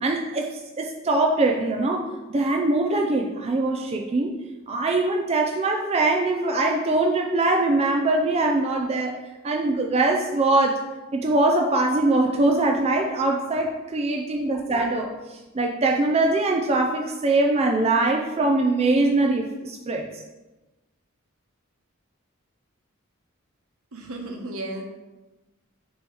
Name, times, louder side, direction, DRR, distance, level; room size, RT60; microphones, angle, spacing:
voice 1, 0.0-4.3 4.7-9.2 9.4-10.8 11.1-20.1, right 2 dB, 30° right, 2 dB, 0.4 m, -22 dB
voice 2, 23.9-24.8, right 1 dB, 75° right, 2 dB, 1.1 m, -34 dB
6.3 x 3.1 x 5.3 m, 1.1 s
head